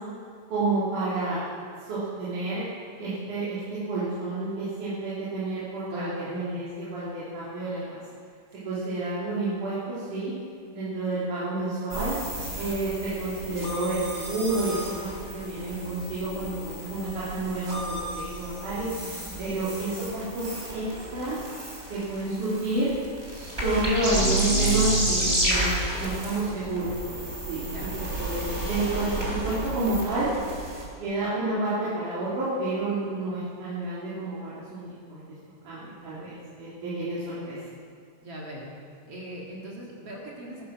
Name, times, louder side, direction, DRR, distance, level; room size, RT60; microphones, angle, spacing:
voice 1, 0.5-1.4 1.8-2.6 3.0-8.0 8.6-10.3 10.7-12.2 12.5-18.9 19.4-20.9 21.1-21.4 21.9-22.9 23.3-27.2 27.5-30.3 31.0-35.2 35.6-37.6, right 2 dB, 85° right, -11 dB, 4.8 m, -30 dB
voice 2, 5.9-6.3 19.2-19.6 27.6-28.0 38.2-38.7 39.1-40.6, equal, 50° right, -3 dB, 3.0 m, -40 dB
sound 1, 11.9-30.8, right 1 dB, 20° right, 3.3 m, -31 dB
15.5 x 13.0 x 5.9 m, 2.2 s
omnidirectional pair, 3.5 m